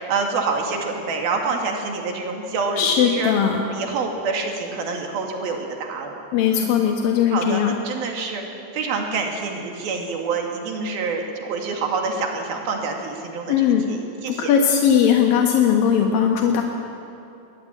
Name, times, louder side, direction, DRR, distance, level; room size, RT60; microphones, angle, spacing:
voice 1, 0.1-3.3 3.7-6.2 6.5-6.7 7.3-8.4 8.7-14.5, right 4 dB, 55° right, 2 dB, 3.7 m, -27 dB
voice 2, 2.8-3.6 6.3-7.8 13.5-13.9 14.3-16.6, left 8 dB, 65° left, 2 dB, 2.3 m, -19 dB
20.5 x 20.0 x 9.0 m, 2.9 s
omnidirectional pair, 5.6 m